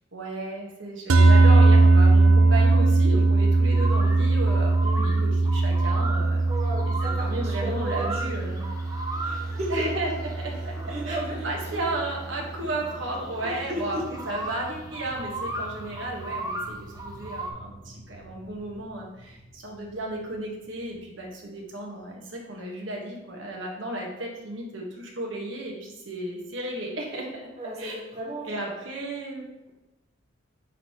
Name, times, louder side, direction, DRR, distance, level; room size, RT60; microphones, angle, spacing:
voice 1, 0.1-6.4 6.9-8.6 9.5-10.7 11.1-11.2 11.4-14.0 14.3-27.5 27.8-28.0 28.4-29.7, right 1 dB, 70° right, -1 dB, 1.4 m, -34 dB
sound 1, 1.1-11.5, right 3 dB, 85° right, 0.6 m, -20 dB
sound 2, 3.7-17.5, right 2 dB, 20° right, 0.7 m, -37 dB
voice 2, 6.5-8.5 9.1-9.9 10.8-11.8 13.4-14.0 27.6-28.7, right 1 dB, 35° right, -4 dB, 1.2 m, -34 dB
sound 3, 6.8-22.0, equal, ahead, 2.2 m, -48 dB
10.0 x 4.1 x 3.0 m, 0.96 s
head